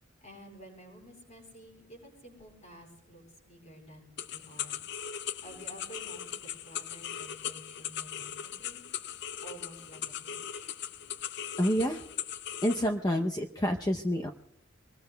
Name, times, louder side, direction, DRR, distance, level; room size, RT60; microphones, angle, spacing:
voice 1, 0.2-4.8 5.4-8.8 9.4-10.7, right 1 dB, 35° left, 0 dB, 7.4 m, -51 dB
sound 1, 4.2-12.9, left 9 dB, 60° left, 0.5 m, -39 dB
voice 2, 11.6-12.0 12.6-14.3, equal, 20° left, 3 dB, 0.7 m, -28 dB
25.0 x 21.0 x 2.3 m, 0.70 s
head